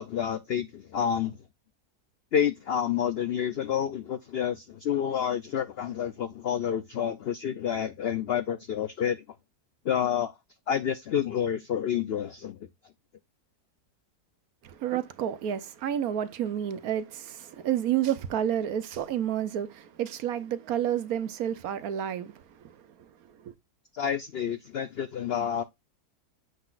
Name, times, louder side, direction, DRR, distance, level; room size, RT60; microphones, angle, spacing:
voice 1, 0.0-1.4 2.3-9.2 9.8-10.3 10.7-12.6 23.9-25.6, left 9 dB, 90° left, 0.5 m, -29 dB
voice 2, 14.6-22.8 23.4-23.5, right 10 dB, 70° right, 1.2 m, -30 dB
8.0 x 5.7 x 2.4 m
omnidirectional pair, 1.7 m